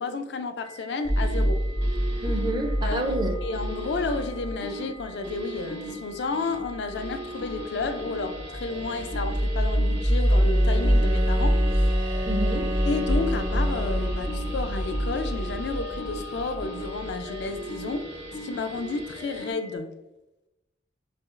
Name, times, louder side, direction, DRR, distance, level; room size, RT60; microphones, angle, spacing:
voice 1, 0.0-1.7 2.8-3.1 3.4-12.2 12.8-20.0, left 3 dB, 65° left, 0.4 m, -32 dB
sound 1, 0.6-19.8, left 4 dB, 80° left, 1.0 m, -45 dB
sound 2, 1.1-19.5, equal, 65° right, 0.9 m, -27 dB
voice 2, 2.2-3.4 12.3-12.7, right 1 dB, 25° right, 0.4 m, -29 dB
Bowed string instrument, 10.3-14.7, left 1 dB, 85° right, 0.6 m, -34 dB
5.8 x 2.3 x 2.4 m
head